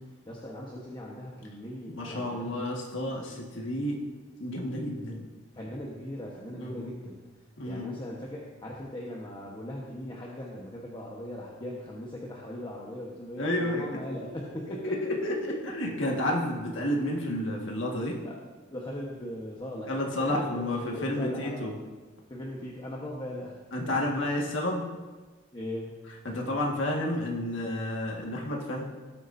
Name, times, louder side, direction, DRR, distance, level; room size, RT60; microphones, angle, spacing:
voice 1, 0.3-2.6 5.5-7.2 7.6-15.0 18.2-18.4 18.7-20.6 20.9-21.7 22.3-23.6 24.0-24.1 25.5-26.0, left 1 dB, 25° left, -3 dB, 1.2 m, -39 dB
voice 2, 1.9-4.0 4.4-5.3 6.6-6.9 7.6-8.0 13.4-14.2 14.7-18.2 19.9-21.7 23.7-24.9 26.2-28.8, left 1 dB, 70° left, -1 dB, 1.7 m, -31 dB
18.0 x 8.5 x 2.7 m, 1.3 s
head